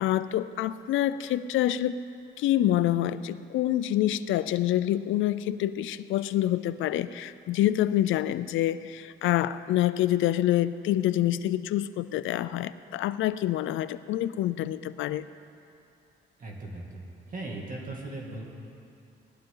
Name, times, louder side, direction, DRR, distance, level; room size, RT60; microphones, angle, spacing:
voice 1, 0.0-2.0 2.4-15.2, left 13 dB, 75° left, 14 dB, 0.5 m, -26 dB
voice 2, 16.4-18.4, right 2 dB, 40° right, -1 dB, 2.3 m, -38 dB
19.0 x 11.5 x 3.9 m, 2.6 s
cardioid pair, 90°, 20 cm